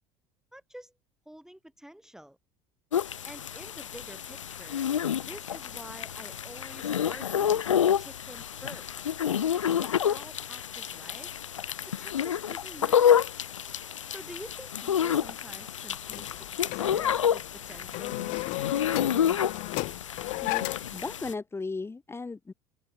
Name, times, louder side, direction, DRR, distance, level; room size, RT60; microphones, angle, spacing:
voice 1, 0.5-0.9 1.3-2.4 3.2-4.9 5.2-7.6 8.0-11.3 11.9-13.3 14.1-19.3, equal, 5° right, 2.5 m, -48 dB
sound 1, 2.9-21.3, left 9 dB, 80° left, 0.9 m, -29 dB
sound 2, 16.1-21.0, left 30 dB, 55° left, 0.4 m, -34 dB
voice 2, 20.9-22.5, left 3 dB, 15° left, 0.9 m, -36 dB
open air
figure-of-eight pair, 65°, 16 cm